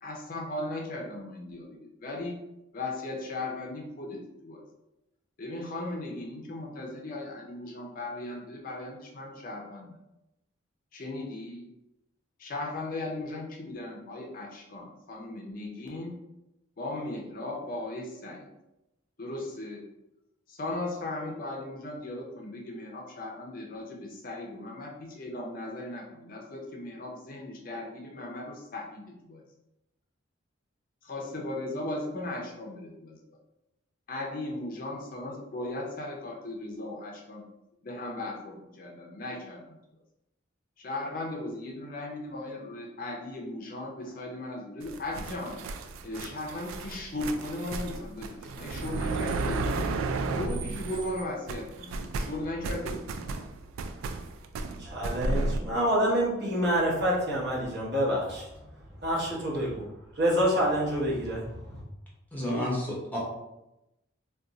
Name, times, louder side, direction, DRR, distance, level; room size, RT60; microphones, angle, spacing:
voice 1, 0.0-2.4 2.7-4.6 5.4-10.0 10.9-11.7 12.4-16.2 16.8-18.5 19.2-19.9 20.5-29.4 31.0-33.2 34.1-37.4 37.8-39.8 40.8-45.6 46.0-49.9 50.4-53.4, left 2 dB, 45° left, 0 dB, 0.4 m, -37 dB
sound 1, 44.8-51.2 51.5-55.6, right 3 dB, 85° right, 0.3 m, -33 dB
voice 2, 54.8-58.5 59.0-59.8 60.2-61.8, equal, 50° right, -4 dB, 0.9 m, -27 dB
voice 3, 62.3-63.2, left 1 dB, 10° left, -4 dB, 0.7 m, -31 dB
2.5 x 2.2 x 3.9 m, 0.92 s
head